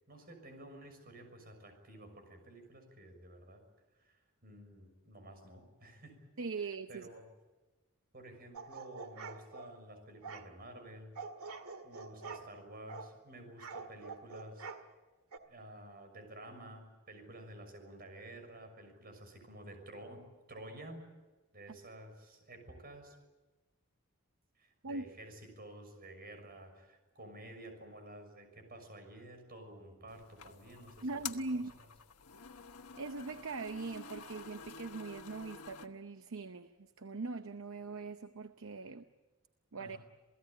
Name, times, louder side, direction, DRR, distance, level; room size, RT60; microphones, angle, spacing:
voice 1, 0.1-3.6 3.9-6.1 6.9-7.2 8.1-11.1 11.8-14.7 15.5-20.2 20.5-21.0 21.5-23.2 24.6-31.6 39.8-40.0, right 1 dB, 40° right, 6 dB, 6.3 m, -51 dB
voice 2, 6.4-7.1 24.8-25.0 31.0-31.7 33.0-39.0 39.7-40.0, right 3 dB, 60° right, 10 dB, 0.8 m, -41 dB
sound 1, 8.5-9.7 10.2-10.5 11.1-12.5 12.9-13.1 13.6-14.8 15.3-15.4, right 4 dB, 80° right, 2.0 m, -46 dB
sound 2, 30.1-35.9, left 7 dB, 85° left, 1.3 m, -49 dB
28.0 x 17.5 x 9.1 m, 1.2 s
head